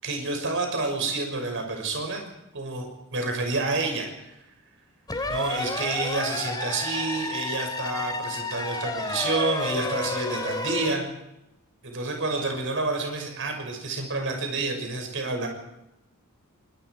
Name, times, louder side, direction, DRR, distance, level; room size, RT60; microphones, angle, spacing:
voice 1, 0.0-2.2 2.5-4.3 5.3-11.0 11.8-15.5, right 3 dB, 60° right, 3 dB, 6.5 m, -29 dB
sound 1, 5.1-10.9, left 2 dB, 20° left, 2.8 m, -31 dB
25.5 x 25.0 x 4.9 m, 0.89 s
head